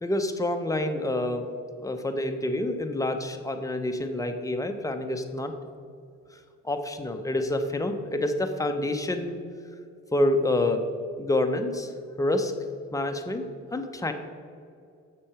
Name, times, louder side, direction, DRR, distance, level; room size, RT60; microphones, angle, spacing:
voice 1, 0.0-1.4 1.8-5.5 6.6-9.4 10.1-10.9 11.2-11.9 12.2-12.5 12.9-13.5 13.7-14.1, left 1 dB, 10° left, 6 dB, 0.7 m, -27 dB
6.9 x 6.0 x 4.8 m, 2.4 s
cardioid pair, 90°, 30 cm